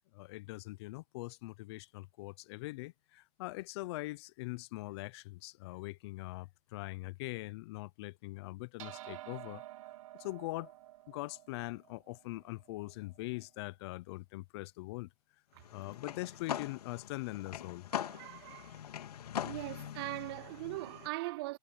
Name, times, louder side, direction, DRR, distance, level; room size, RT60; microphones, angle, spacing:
voice 1, 0.1-9.6 10.2-10.7 11.1-15.1 15.7-17.9, left 21 dB, 45° left, 0.6 m, -42 dB
sound 1, 8.8-13.5, right 15 dB, 60° right, 1.3 m, -51 dB
sound 2, 15.6-21.1, left 9 dB, 80° left, 3.0 m, -42 dB
voice 2, 17.9-18.8 19.4-21.6, right 21 dB, 40° right, 0.5 m, -40 dB
hypercardioid pair, 145°, 20 cm